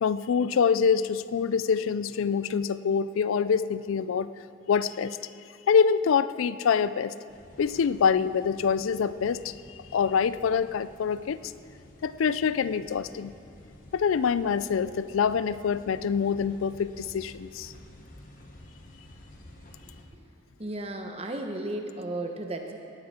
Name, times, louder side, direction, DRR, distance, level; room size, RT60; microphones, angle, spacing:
voice 1, 0.0-4.3 4.7-5.2 5.7-7.1 7.6-11.4 12.0-13.3 13.9-17.7, left 6 dB, 80° left, 15 dB, 0.4 m, -25 dB
sound 1, 7.3-20.0, left 1 dB, 40° left, 1.3 m, -51 dB
voice 2, 20.6-22.8, right 2 dB, 30° right, 4 dB, 1.0 m, -34 dB
18.0 x 9.6 x 4.3 m, 2.6 s
head